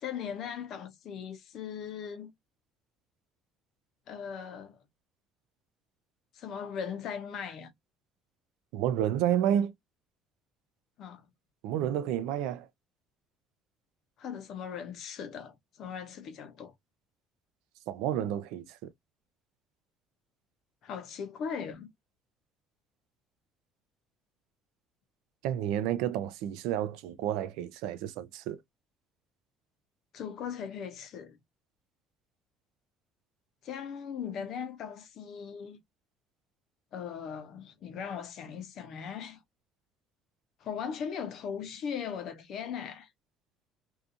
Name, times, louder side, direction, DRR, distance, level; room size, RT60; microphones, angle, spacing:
voice 1, 0.0-2.3 4.1-4.8 6.3-7.7 11.0-11.2 14.2-16.7 20.8-21.9 30.1-31.4 33.6-35.8 36.9-39.4 40.6-43.1, left 7 dB, 45° left, 0.6 m, -39 dB
voice 2, 8.7-9.7 11.6-12.7 17.9-18.9 25.4-28.6, right 10 dB, 80° right, 0.4 m, -30 dB
2.7 x 2.4 x 2.5 m
cardioid pair, 170°, 0 cm